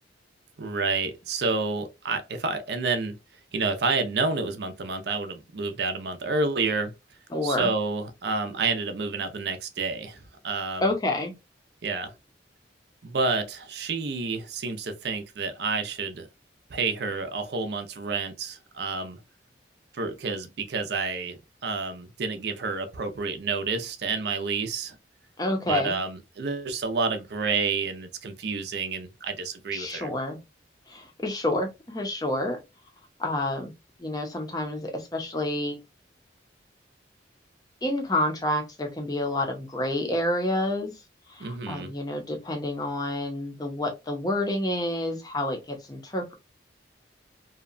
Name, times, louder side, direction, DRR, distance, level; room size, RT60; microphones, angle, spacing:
voice 1, 0.6-3.1 3.5-6.9 7.4-10.9 11.8-12.1 13.0-16.3 16.7-19.2 19.9-21.4 21.6-25.0 25.7-30.1 41.4-41.9, right 4 dB, 60° right, 0.5 m, -29 dB
voice 2, 7.3-7.7 10.8-11.3 25.4-26.0 29.7-30.4 30.9-32.6 33.2-33.7 34.0-35.8 37.8-40.9 41.3-46.3, left 1 dB, 20° left, 0.6 m, -28 dB
2.7 x 2.1 x 2.4 m
head